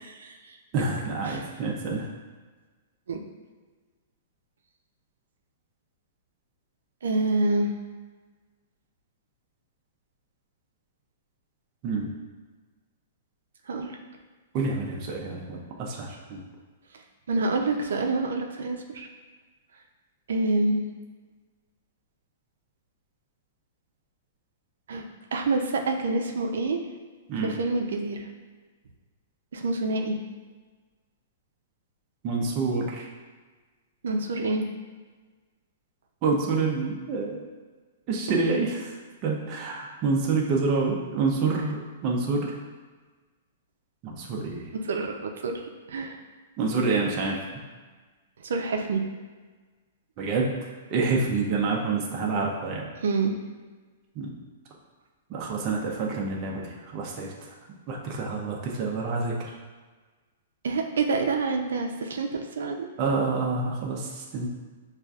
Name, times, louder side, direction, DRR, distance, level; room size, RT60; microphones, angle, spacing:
voice 1, 0.0-0.6 1.3-1.5 3.1-3.2 7.0-7.7 13.7-14.0 17.3-19.1 20.3-20.9 24.9-25.0 25.3-26.8 27.4-28.2 29.5-30.2 34.0-34.7 44.8-45.6 45.9-46.2 48.4-49.0 53.0-53.3 60.6-62.9, right 3 dB, 80° right, 3 dB, 0.5 m, -27 dB
voice 2, 0.7-2.1 11.8-12.1 14.5-16.4 27.3-27.5 32.2-33.1 36.2-37.4 38.1-38.9 39.2-42.5 44.0-44.7 46.6-47.4 50.2-50.5 50.9-52.9 54.2-54.3 55.3-57.3 57.9-59.5 63.0-64.5, right 4 dB, 25° right, -2 dB, 0.4 m, -27 dB
6.4 x 2.4 x 2.3 m, 1.4 s
hypercardioid pair, 180°, 0 cm